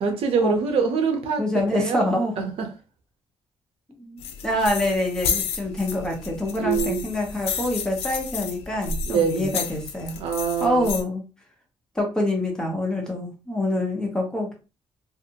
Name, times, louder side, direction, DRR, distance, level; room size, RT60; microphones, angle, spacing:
voice 1, 0.0-1.4 1.7-2.0 2.4-2.7 6.5-7.0 9.1-9.6 10.2-10.9, right 6 dB, 70° right, 0.6 m, -24 dB
voice 2, 1.4-2.3 4.0-10.2 10.6-11.2 11.9-14.5, left 1 dB, 5° left, 0.8 m, -26 dB
sound 1, 4.2-11.0, left 6 dB, 90° left, 0.4 m, -31 dB
2.7 x 2.4 x 2.7 m
cardioid pair, 135°, 10 cm